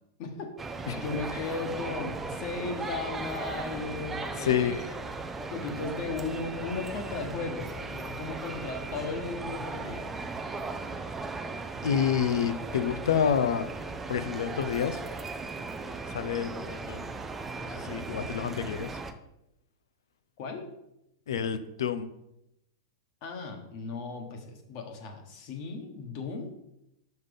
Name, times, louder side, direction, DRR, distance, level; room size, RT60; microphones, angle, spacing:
voice 1, 0.2-4.9 5.5-10.4 20.4-20.7 23.2-26.5, left 4 dB, 35° left, 4 dB, 1.3 m, -36 dB
sound 1, 0.6-19.1, right 3 dB, 10° right, 0.4 m, -37 dB
voice 2, 4.4-4.7 11.8-13.7 14.1-15.0 16.1-17.1 17.6-18.9 21.3-22.1, left 8 dB, 85° left, 11 dB, 0.7 m, -28 dB
5.8 x 5.7 x 5.2 m, 0.85 s
supercardioid pair, 165°, 2 cm